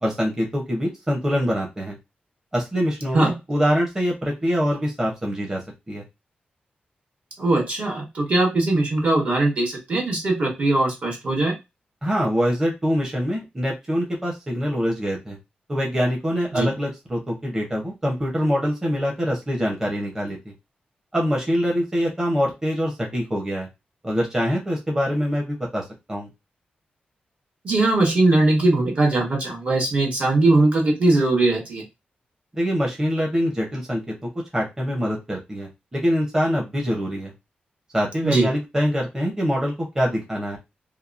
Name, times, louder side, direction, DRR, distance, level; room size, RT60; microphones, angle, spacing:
voice 1, 0.0-2.0 2.5-6.0 12.0-15.4 15.7-20.4 21.1-23.7 24.0-25.8 26.1-26.3 32.5-34.0 34.5-37.3 37.9-40.6, equal, 15° right, -1 dB, 0.7 m, -24 dB
voice 2, 7.4-11.5 16.5-16.7 27.6-31.8 38.2-38.5, right 2 dB, 50° right, 1 dB, 1.0 m, -20 dB
2.8 x 2.2 x 2.4 m, 0.22 s
wide cardioid pair, 140°, 3 cm